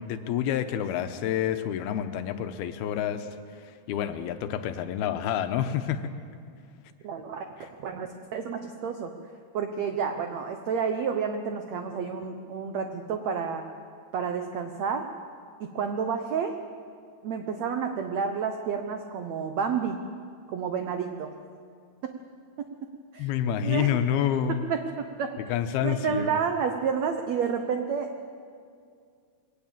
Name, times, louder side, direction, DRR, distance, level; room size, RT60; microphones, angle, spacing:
voice 1, 0.0-3.3 3.6-6.0 23.2-24.7 25.5-26.4, left 10 dB, 80° left, 9 dB, 2.8 m, -28 dB
voice 2, 7.0-9.1 9.5-13.7 14.1-15.1 15.6-16.6 17.2-20.0 20.5-21.3 22.0-22.2 23.1-23.3 23.6-23.9 24.7-25.3 25.8-28.3, right 6 dB, 80° right, 6 dB, 1.5 m, -30 dB
23.0 x 18.5 x 7.4 m, 2.2 s
omnidirectional pair, 4.5 m